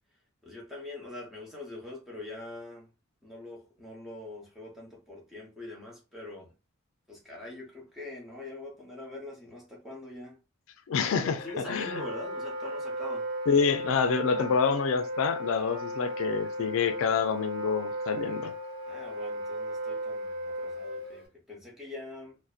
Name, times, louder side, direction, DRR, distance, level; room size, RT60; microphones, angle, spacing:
voice 1, 0.4-2.9 3.2-6.5 7.1-10.3 11.2-13.3 18.9-22.4, left 2 dB, ahead, 0.8 m, -43 dB
voice 2, 10.9-12.0 13.5-18.5, left 6 dB, 80° left, 0.4 m, -27 dB
Wind instrument woodwind instrument, 11.3-21.3, equal, 45° right, 0.8 m, -35 dB
2.6 x 2.1 x 2.3 m
head